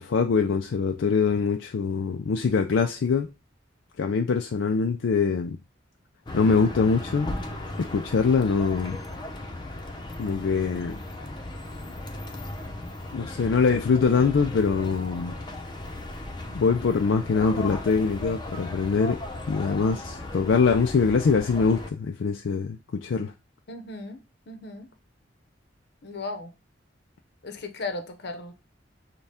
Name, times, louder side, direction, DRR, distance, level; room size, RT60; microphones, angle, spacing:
voice 1, 0.0-3.3 4.0-5.6 6.3-7.3 7.8-9.0 10.2-11.0 13.1-15.3 16.5-19.2 19.5-23.3, left 5 dB, 80° left, 0.4 m, -23 dB
sound 1, 6.3-21.9, left 1 dB, 25° left, 0.7 m, -36 dB
voice 2, 23.7-24.2 24.5-24.9 26.0-26.5 27.4-28.5, left 3 dB, 60° left, 0.8 m, -36 dB
6.5 x 2.3 x 3.5 m
head